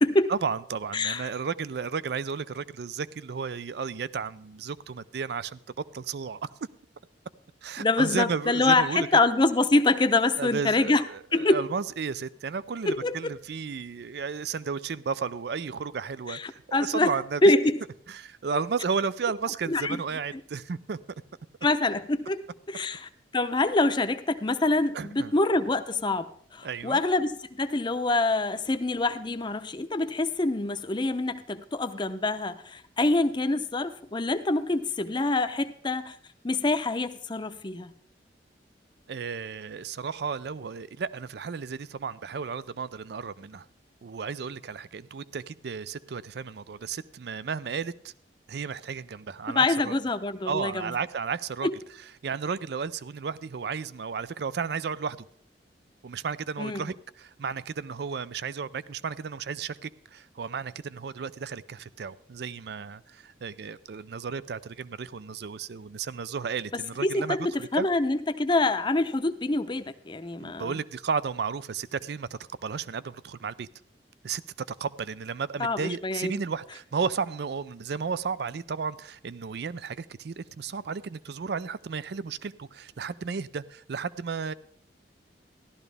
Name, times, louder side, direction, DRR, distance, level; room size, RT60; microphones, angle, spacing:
voice 1, 0.3-5.6 5.9-6.5 7.6-9.1 10.4-17.5 18.1-21.0 24.9-25.3 26.6-27.0 39.1-43.7 44.0-48.1 48.5-49.9 50.5-51.7 52.2-55.3 56.0-67.9 70.4-73.7 74.2-74.4 74.7-84.5, right 5 dB, 60° right, 0.4 m, -33 dB
voice 2, 0.9-1.3 7.8-11.1 11.3-11.6 12.9-13.4 16.3-17.1 17.4-17.8 18.5-18.6 19.7-20.0 21.6-36.1 36.4-37.9 49.5-50.9 51.6-51.7 56.6-56.9 67.0-70.7 75.6-76.3, left 2 dB, 25° left, 0.6 m, -25 dB
14.5 x 12.0 x 3.4 m
head